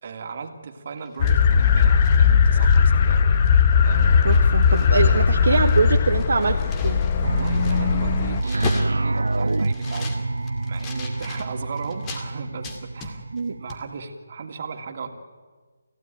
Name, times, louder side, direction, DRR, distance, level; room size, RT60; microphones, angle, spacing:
voice 1, 0.0-3.3 3.8-4.8 5.5-5.6 7.2-13.3 13.6-15.1, right 5 dB, 45° right, 5 dB, 2.8 m, -37 dB
sound 1, 1.0-3.0 3.5-3.6 3.9-5.2 5.4-12.3 12.6-13.4 13.7-13.8, left 3 dB, 20° left, 2.3 m, -38 dB
sound 2, 1.2-8.4, left 6 dB, 35° left, 1.2 m, -18 dB
voice 2, 4.2-6.6 6.8-7.0 13.3-13.6, right 4 dB, 65° right, 4 dB, 1.4 m, -23 dB
sound 3, 7.2-13.9, right 2 dB, 85° right, 0.7 m, -27 dB
28.0 x 16.0 x 9.3 m, 1.4 s
figure-of-eight pair, 160°, 0 cm